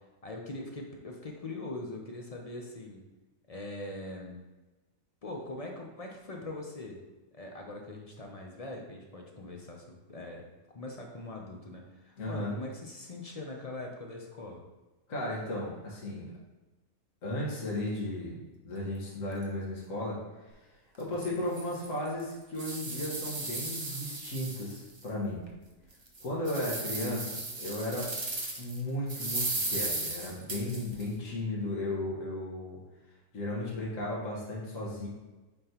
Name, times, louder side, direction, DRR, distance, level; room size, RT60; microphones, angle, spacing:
voice 1, 0.2-3.0 3.5-4.4 5.2-7.0 7.3-10.5 10.7-14.6, left 2 dB, 45° left, 1 dB, 0.4 m, -42 dB
voice 2, 12.2-12.5 15.1-16.3 17.2-18.4 18.6-20.2 21.0-25.4 26.2-28.1 28.6-32.8 33.3-35.1, left 1 dB, 60° left, -4 dB, 1.8 m, -35 dB
sound 1, 17.9-18.0 18.5-19.0 19.3-19.5 19.8-19.9 21.2-22.7 23.9-24.1 24.4-25.3 27.0-28.2 30.1-30.7, right 3 dB, 50° right, 1.0 m, -54 dB
sound 2, 20.9-21.0 21.6-21.7 22.2-25.0 25.5-25.6 26.1-28.8 29.1-31.0, right 2 dB, 25° right, 0.6 m, -36 dB
8.6 x 3.8 x 3.0 m, 1.2 s
omnidirectional pair, 1.6 m